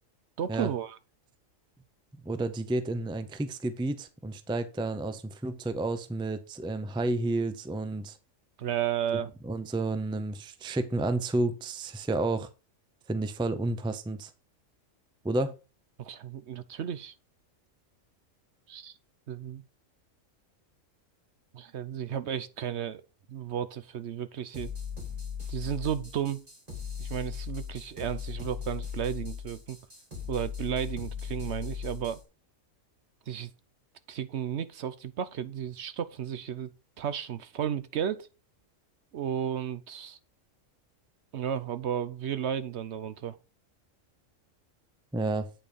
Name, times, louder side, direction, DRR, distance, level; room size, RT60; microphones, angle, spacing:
voice 1, 0.4-1.0 8.6-9.3 16.0-17.1 18.7-18.9 19.3-19.6 21.5-23.0 23.3-24.7 25.5-26.4 27.0-29.8 30.3-32.2 33.3-33.5 34.1-36.7 37.0-38.3 39.1-40.2 41.3-43.4, right 9 dB, 65° right, 0.9 m, -33 dB
voice 2, 2.2-8.2 9.1-12.5 13.1-14.3 15.2-15.6 45.1-45.5, right 2 dB, 5° right, 0.4 m, -31 dB
sound 1, 24.5-32.2, left 7 dB, 30° right, 2.7 m, -38 dB
8.9 x 4.5 x 5.1 m
omnidirectional pair, 1.4 m